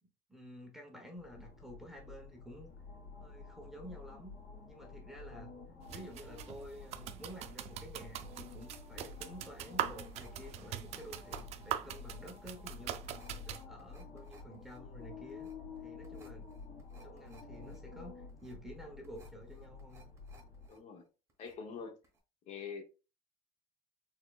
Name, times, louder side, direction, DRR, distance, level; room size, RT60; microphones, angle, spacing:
voice 1, 0.0-2.7 3.2-4.4 4.7-15.5 15.8-16.5 17.0-20.1, equal, ahead, 0.8 m, -51 dB
sound 1, 1.2-20.7, left 4 dB, 70° left, 2.1 m, -51 dB
sound 2, 5.8-13.6, right 11 dB, 45° right, 0.4 m, -42 dB
sound 3, 10.0-20.8 21.1-21.8 22.0-22.2, right 2 dB, 20° right, 1.1 m, -62 dB
voice 2, 20.7-21.0 21.4-22.0 22.5-22.8, left 6 dB, 45° left, 0.9 m, -44 dB
4.5 x 3.6 x 2.3 m
cardioid pair, 155°, 16 cm